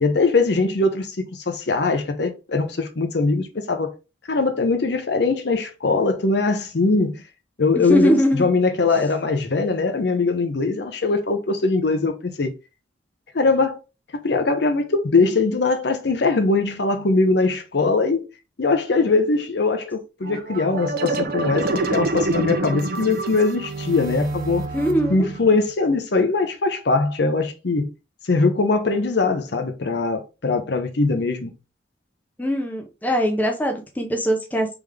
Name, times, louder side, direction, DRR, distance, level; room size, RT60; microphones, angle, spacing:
voice 1, 0.0-3.9 4.3-7.2 7.6-12.5 13.3-13.8 14.2-18.3 18.6-24.6 25.1-27.9 28.2-31.5, left 3 dB, 55° left, 0.6 m, -21 dB
voice 2, 7.9-8.5 24.7-25.3 32.4-34.7, equal, 10° left, 0.6 m, -21 dB
sound 1, 20.2-25.6, right 2 dB, 50° right, 0.5 m, -27 dB
3.5 x 3.4 x 3.3 m
head